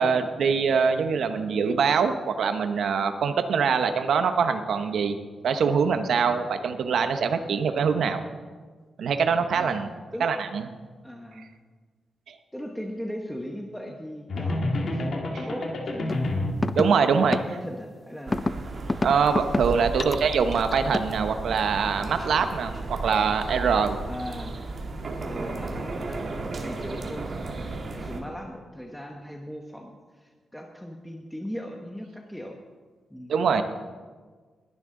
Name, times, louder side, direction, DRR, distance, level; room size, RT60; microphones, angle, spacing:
voice 1, 0.0-5.2 5.4-8.2 9.0-9.9 10.2-10.6 12.3-12.4 16.8-17.4 19.0-24.0 33.3-33.6, right 6 dB, 70° right, 8 dB, 0.8 m, -23 dB
voice 2, 9.5-10.3 11.0-11.5 12.5-15.2 15.4-16.3 17.3-18.7 19.9-20.2 24.1-24.5 25.2-32.6 33.1-33.3, equal, ahead, 1 dB, 0.9 m, -38 dB
sound 1, 14.3-16.7, left 1 dB, 50° left, 1.8 m, -28 dB
sound 2, 16.1-16.2 16.6-16.9 17.3-17.4 18.3-18.5 18.9-19.6 20.0-21.1, left 2 dB, 20° left, 0.4 m, -26 dB
sound 3, 18.3-28.2, right 2 dB, 40° right, 1.6 m, -34 dB
20.5 x 11.0 x 3.8 m, 1.5 s
wide cardioid pair, 150°, 0 cm